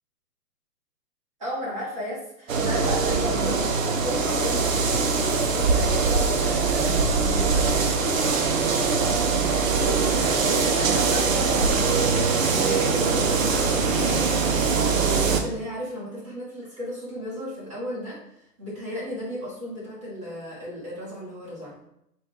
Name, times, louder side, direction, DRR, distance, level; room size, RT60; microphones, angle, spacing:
voice 1, 1.4-7.2 9.7-21.8, equal, 20° right, -8 dB, 1.0 m, -34 dB
sound 1, 2.5-15.4, right 4 dB, 55° right, 0.5 m, -22 dB
4.3 x 2.3 x 3.7 m, 0.78 s
hypercardioid pair, 170°, 50 cm